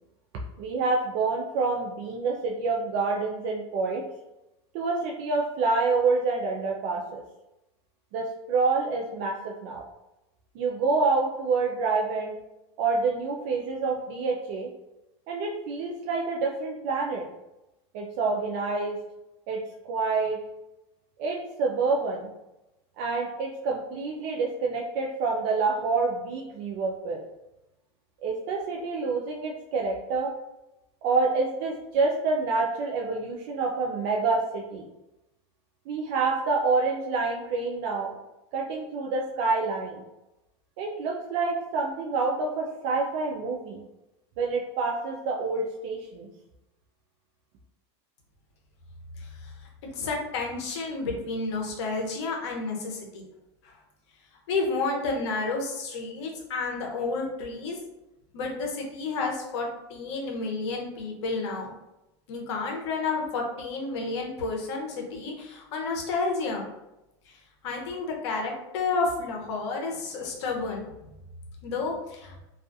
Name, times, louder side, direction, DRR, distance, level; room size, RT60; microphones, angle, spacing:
voice 1, 0.6-4.0 4.7-7.2 8.1-9.8 10.5-12.3 12.8-14.7 15.3-17.3 17.9-19.0 19.5-19.6 19.9-20.4 21.2-22.3 23.0-27.2 28.2-30.3 31.0-34.8 35.9-38.1 38.5-40.0 40.8-43.8 44.4-46.3, right 4 dB, 55° right, 0 dB, 0.4 m, -27 dB
voice 2, 49.2-49.5 49.9-53.2 53.6-53.8 54.5-57.8 58.3-61.7 62.3-66.7 67.3-71.1 71.6-72.4, left 3 dB, 75° left, 0 dB, 0.7 m, -31 dB
2.4 x 2.3 x 2.6 m, 0.95 s
supercardioid pair, 140°, 15 cm